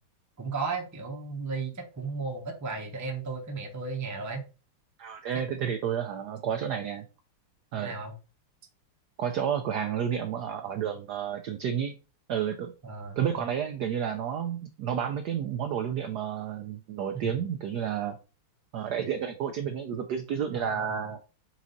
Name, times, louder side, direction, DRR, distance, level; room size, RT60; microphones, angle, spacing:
voice 1, 0.4-4.4 5.3-5.4 7.8-8.1 12.8-13.5 17.1-17.3 20.5-21.1, right 4 dB, 15° right, 2 dB, 0.6 m, -35 dB
voice 2, 5.0-7.0 7.7-7.9 9.2-11.9 12.3-12.7 13.2-18.2 18.7-21.2, right 8 dB, 75° right, 6 dB, 0.9 m, -31 dB
6.2 x 4.1 x 4.0 m, 0.32 s
omnidirectional pair, 2.4 m